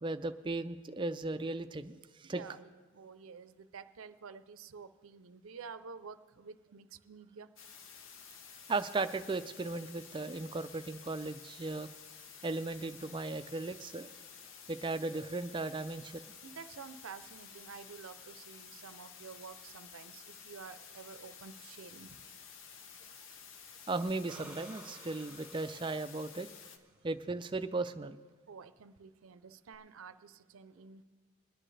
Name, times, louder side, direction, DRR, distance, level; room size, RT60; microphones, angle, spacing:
voice 1, 0.0-2.4 8.7-11.9 12.4-14.1 14.7-16.2 23.9-26.5 27.0-28.2, right 3 dB, 25° right, 11 dB, 0.3 m, -36 dB
voice 2, 2.2-7.5 13.4-13.6 16.4-22.2 28.5-31.0, right 5 dB, 80° right, 12 dB, 0.5 m, -50 dB
sound 1, 7.6-26.8, left 6 dB, 70° left, 0.8 m, -52 dB
sound 2, 24.1-26.9 29.7-29.8, right 2 dB, 5° right, 0.9 m, -55 dB
22.0 x 10.0 x 3.3 m, 1.4 s
head